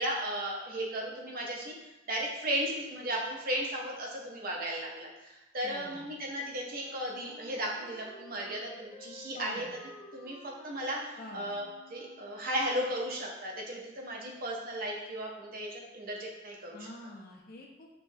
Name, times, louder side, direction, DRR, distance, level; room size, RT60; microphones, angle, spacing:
voice 1, 0.0-1.7 2.1-9.7 10.1-16.8, right 1 dB, 50° right, -2 dB, 0.7 m, -35 dB
voice 2, 5.6-6.1 9.3-9.8 11.2-11.5 16.7-17.9, left 2 dB, 50° left, 1 dB, 0.5 m, -47 dB
Wind instrument woodwind instrument, 6.7-12.5, left 1 dB, 10° left, 0.8 m, -53 dB
5.4 x 2.1 x 2.6 m, 1.0 s
head